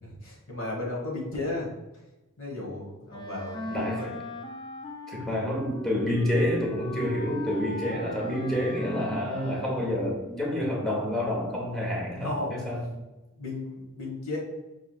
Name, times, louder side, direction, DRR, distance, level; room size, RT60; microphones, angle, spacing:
voice 1, 0.0-1.7 2.4-4.2 5.2-5.4 12.2-12.6 13.3-14.4, left 2 dB, 85° left, -2 dB, 1.2 m, -34 dB
Wind instrument woodwind instrument, 3.1-10.3, left 1 dB, 20° left, 0.3 m, -39 dB
voice 2, 3.7-4.2 5.1-12.8, left 1 dB, ahead, -3 dB, 0.8 m, -28 dB
4.7 x 3.1 x 2.3 m, 1.1 s
head